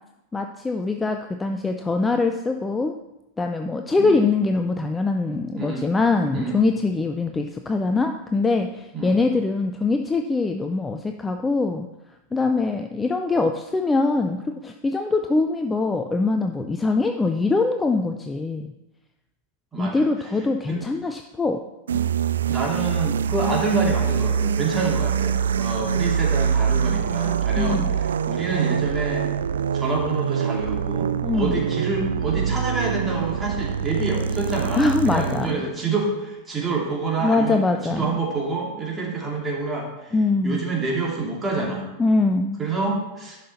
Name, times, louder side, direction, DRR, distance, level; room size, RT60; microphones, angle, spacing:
voice 1, 0.3-2.9 3.4-11.9 12.3-18.7 19.8-21.6 27.5-28.0 31.2-31.6 34.8-35.6 37.2-38.1 40.1-40.6 42.0-42.6, left 3 dB, 10° left, 5 dB, 0.5 m, -23 dB
voice 2, 4.0-4.3 5.5-5.9 6.3-6.6 8.9-9.2 19.7-20.1 20.7-20.8 22.5-29.3 29.7-40.1 40.4-41.9 42.6-43.4, right 3 dB, 15° right, -2 dB, 2.4 m, -27 dB
sound 1, 21.9-35.5, right 7 dB, 65° right, 0.3 m, -24 dB
11.0 x 5.6 x 4.1 m, 0.97 s
figure-of-eight pair, 90°, 0 cm